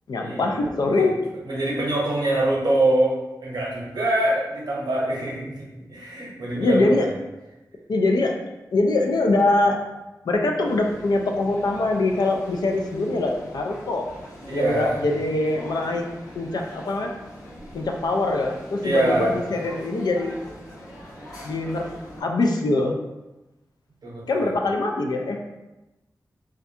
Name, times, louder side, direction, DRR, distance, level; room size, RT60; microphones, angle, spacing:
voice 1, 0.1-1.2 6.5-7.0 7.9-8.4 8.7-9.8 10.2-14.1 14.5-17.1 17.7-20.4 21.4-21.9 22.2-23.0 24.3-25.4, left 2 dB, 80° left, 3 dB, 0.3 m, -23 dB
voice 2, 1.4-3.2 3.4-7.1 14.5-15.0 18.8-19.3 24.0-24.5, right 1 dB, 75° right, -4 dB, 0.7 m, -24 dB
sound 1, 10.6-22.2, equal, 60° left, 1.1 m, -43 dB
2.4 x 2.2 x 2.7 m, 1.0 s
wide cardioid pair, 85°, 7 cm